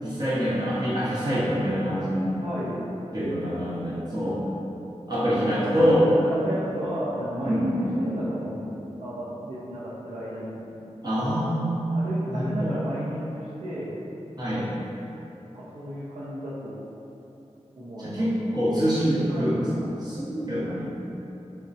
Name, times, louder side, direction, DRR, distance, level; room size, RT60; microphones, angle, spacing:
voice 1, 0.0-2.3 3.1-4.4 5.1-6.1 7.4-7.7 11.0-12.8 14.4-14.7 18.0-20.9, equal, 35° right, -11 dB, 1.2 m, -25 dB
voice 2, 2.4-2.8 5.3-10.6 11.9-13.9 15.5-16.8 17.8-18.3 19.3-19.6, equal, 65° right, -10 dB, 0.6 m, -33 dB
3.8 x 2.2 x 2.7 m, 2.9 s
cardioid pair, 40°, 12 cm